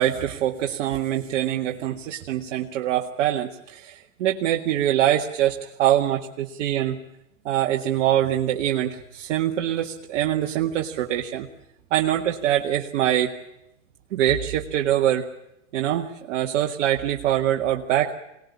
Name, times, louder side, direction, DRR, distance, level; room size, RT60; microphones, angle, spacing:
voice 1, 0.0-7.0 7.4-11.5 11.9-13.3 14.1-15.3 15.7-18.1, right 12 dB, 60° right, 1 dB, 2.0 m, -24 dB
24.5 x 19.0 x 8.4 m, 0.87 s
hypercardioid pair, 125°, 39 cm